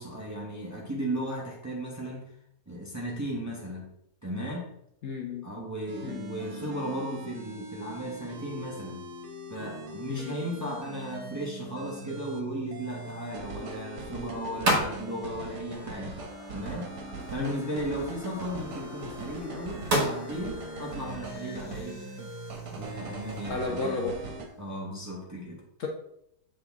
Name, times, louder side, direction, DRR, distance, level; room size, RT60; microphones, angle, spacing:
voice 1, 0.0-2.2 2.7-3.9 4.2-4.7 5.4-9.0 9.5-16.2 16.5-16.9 17.3-22.0 22.7-24.1 24.6-25.6, right 1 dB, 15° right, -3 dB, 0.9 m, -36 dB
voice 2, 5.0-5.4 6.0-6.2 10.1-10.3 17.4-17.6 23.5-24.2 25.8-25.9, left 4 dB, 60° left, 0 dB, 1.1 m, -32 dB
sound 1, 5.9-24.5, right 2 dB, 80° right, 1.5 m, -41 dB
sound 2, 10.7-23.5, right 1 dB, 55° right, 1.8 m, -36 dB
sound 3, 16.1-25.1, left 3 dB, 80° left, 1.4 m, -51 dB
7.7 x 3.9 x 3.5 m, 0.75 s
omnidirectional pair, 1.7 m